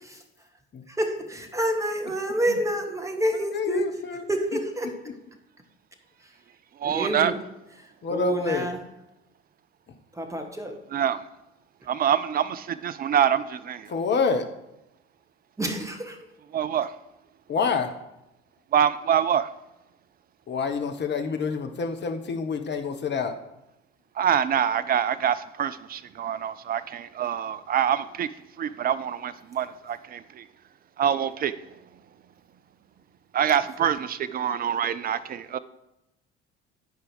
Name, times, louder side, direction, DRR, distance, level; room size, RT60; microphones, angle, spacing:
voice 1, 0.9-3.8 4.3-4.9 6.8-7.4 8.1-8.8 10.2-10.7 15.6-16.2, right 1 dB, 10° right, 4 dB, 1.6 m, -28 dB
voice 2, 3.3-4.2 6.9-7.2 8.0-8.7 13.9-14.5 17.5-17.9 20.5-23.4, left 5 dB, 30° left, 6 dB, 1.1 m, -27 dB
voice 3, 6.8-7.3 10.9-11.2 11.9-13.9 16.5-16.9 18.7-19.5 24.2-28.3 28.6-30.4 31.0-31.6 33.3-35.6, right 9 dB, 25° right, 14 dB, 0.4 m, -25 dB
12.0 x 4.8 x 4.9 m, 0.91 s
figure-of-eight pair, 60°, 35 cm